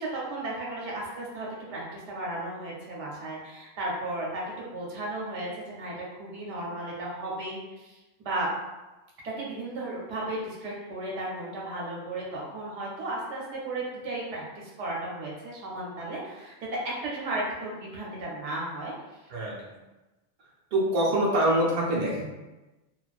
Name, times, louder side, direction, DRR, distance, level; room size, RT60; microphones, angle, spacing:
voice 1, 0.0-8.5 9.2-16.5 17.0-18.9, right 2 dB, 85° right, -3 dB, 1.0 m, -35 dB
voice 2, 20.7-22.2, right 1 dB, 60° right, -4 dB, 0.8 m, -24 dB
2.4 x 2.2 x 2.3 m, 1.1 s
omnidirectional pair, 1.2 m